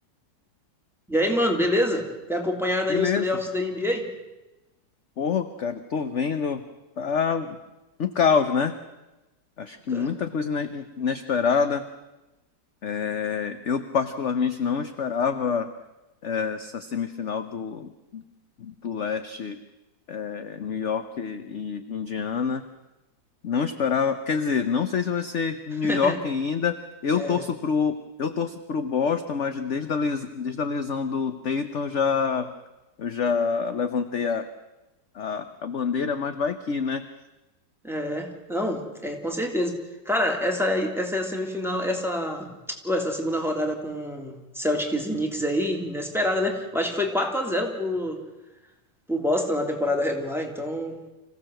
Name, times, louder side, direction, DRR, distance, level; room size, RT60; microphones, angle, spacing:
voice 1, 1.1-4.1 9.9-10.0 25.8-26.1 27.1-27.4 37.8-39.8 40.0-42.5 42.8-48.2 49.1-51.0, left 1 dB, ahead, 2 dB, 2.9 m, -26 dB
voice 2, 2.9-3.3 5.2-6.7 7.0-7.6 8.0-8.7 9.6-11.9 12.8-15.7 16.2-18.2 18.6-19.6 20.1-22.6 23.4-32.5 33.0-34.5 35.1-37.1, left 6 dB, 50° left, 10 dB, 1.1 m, -26 dB
26.0 x 16.0 x 7.7 m, 1.0 s
omnidirectional pair, 1.9 m